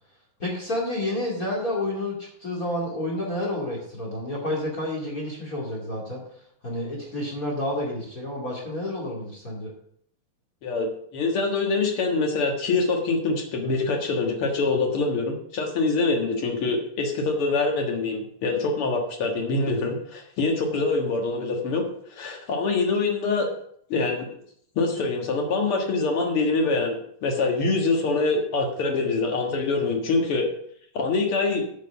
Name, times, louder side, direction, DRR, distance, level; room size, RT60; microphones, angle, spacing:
voice 1, 0.4-6.2 6.6-9.7, left 1 dB, 25° left, -2 dB, 2.3 m, -30 dB
voice 2, 10.6-21.8 22.1-23.5 23.9-24.3 24.8-27.0 27.2-30.5 30.9-31.6, left 3 dB, 50° left, 2 dB, 1.8 m, -24 dB
8.3 x 6.2 x 6.9 m, 0.66 s
omnidirectional pair, 4.3 m